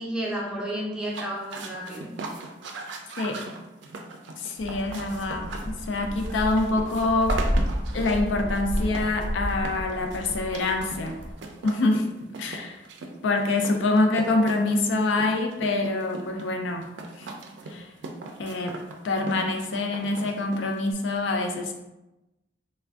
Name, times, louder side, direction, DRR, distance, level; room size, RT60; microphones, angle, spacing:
voice 1, 0.0-2.1, right 1 dB, 5° right, -4 dB, 0.5 m, -32 dB
sound 1, 1.0-20.9, right 2 dB, 75° right, 0.4 m, -39 dB
voice 2, 4.4-7.4 7.9-11.1 11.6-12.1 12.4-12.8 13.2-16.9 17.2-17.3 17.7-17.9 18.4-18.8 19.0-21.7, left 2 dB, 90° left, 4 dB, 0.4 m, -25 dB
sound 2, 4.6-11.3, equal, 70° left, 1.0 m, -31 dB
3.3 x 2.4 x 2.3 m, 0.98 s
head